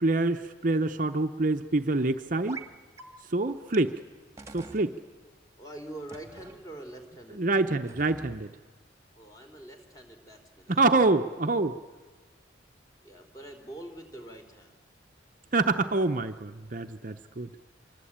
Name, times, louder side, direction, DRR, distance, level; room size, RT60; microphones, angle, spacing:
voice 1, 0.0-2.6 3.3-4.0 4.5-4.9 7.3-8.5 10.7-11.8 15.5-17.5, right 2 dB, 45° right, 7 dB, 0.8 m, -26 dB
sound 1, 2.5-2.7 3.0-3.1 3.7-3.8 4.4-4.9 6.1-6.6 7.7-8.4, right 3 dB, 15° right, 1.8 m, -44 dB
voice 2, 5.6-7.6 9.1-10.8 13.0-14.7, right 1 dB, 20° left, 4 dB, 3.5 m, -45 dB
26.0 x 24.5 x 8.8 m, 1.3 s
head